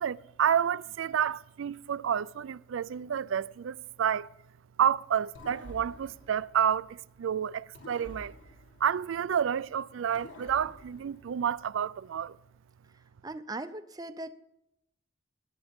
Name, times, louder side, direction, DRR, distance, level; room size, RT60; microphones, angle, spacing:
voice 1, 0.0-4.3 4.8-8.3 8.8-12.4, right 8 dB, 80° right, 0.4 m, -29 dB
sound 1, 5.3-7.2 7.7-9.6 10.1-11.9, left 1 dB, 70° left, 2.9 m, -50 dB
voice 2, 13.2-14.3, right 2 dB, 20° right, 0.6 m, -39 dB
22.0 x 10.0 x 3.6 m
head